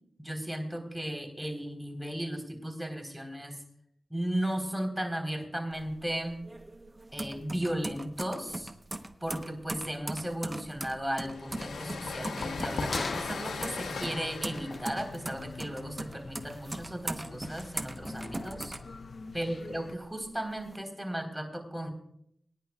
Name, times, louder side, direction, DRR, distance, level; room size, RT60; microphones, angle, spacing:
voice 1, 0.2-3.6 4.1-6.4 7.1-8.7 9.2-18.7 19.3-21.9, right 1 dB, 10° right, 3 dB, 3.9 m, -35 dB
sound 1, 5.7-19.5 19.9-20.8, right 1 dB, 25° right, 1.0 m, -40 dB
sound 2, 11.3-16.8, left 4 dB, 85° left, 1.4 m, -38 dB
sound 3, 11.5-19.9, left 3 dB, 55° left, 0.7 m, -43 dB
23.5 x 10.0 x 2.4 m, 0.71 s
cardioid pair, 50°, 0 cm